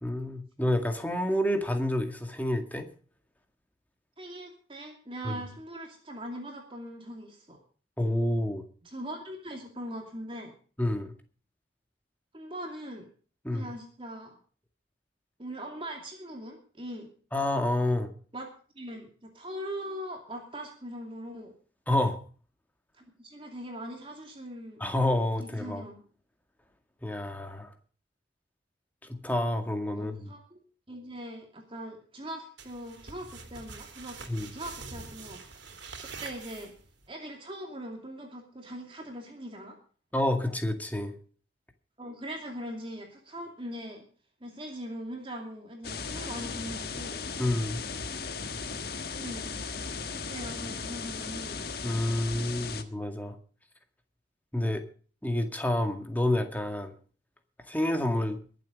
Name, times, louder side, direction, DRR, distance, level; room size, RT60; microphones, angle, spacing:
voice 1, 0.0-2.9 5.2-5.4 8.0-8.6 10.8-11.1 13.4-13.7 17.3-18.1 21.9-22.2 24.8-25.8 27.0-27.7 29.1-30.3 34.3-34.5 40.1-41.1 47.4-47.8 51.8-53.4 54.5-54.8 55.2-56.9 57.7-58.4, left 1 dB, 10° left, 5 dB, 2.0 m, -28 dB
voice 2, 4.2-7.6 8.8-10.5 12.3-13.1 13.5-14.4 15.4-17.1 18.3-18.5 18.7-21.5 22.9-24.8 25.4-26.0 29.9-34.2 34.5-35.4 35.7-36.7 37.1-39.8 42.0-44.0 44.4-47.2 49.1-49.5 50.1-51.9, equal, 30° right, 2 dB, 2.6 m, -41 dB
sound 1, 32.6-37.1, right 4 dB, 80° right, 3.1 m, -45 dB
sound 2, 45.8-52.8, left 4 dB, 55° left, 1.5 m, -37 dB
22.0 x 7.8 x 5.2 m, 0.41 s
head